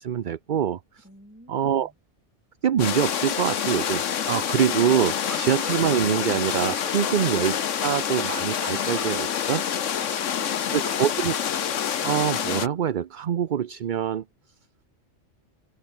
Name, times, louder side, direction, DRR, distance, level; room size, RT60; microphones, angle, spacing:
voice 1, 0.0-1.0 1.5-1.9 2.6-9.6 10.7-11.3 12.0-14.2, right 9 dB, 50° right, 0.7 m, -25 dB
voice 2, 1.0-1.9 5.1-5.4 9.9-11.0, equal, 10° right, 7.5 m, -50 dB
sound 1, 2.8-12.7, left 8 dB, 85° left, 1.4 m, -27 dB
sound 2, 3.4-4.2 5.2-6.4 8.7-9.5, right 2 dB, 25° right, 2.6 m, -43 dB
omnidirectional pair, 1.3 m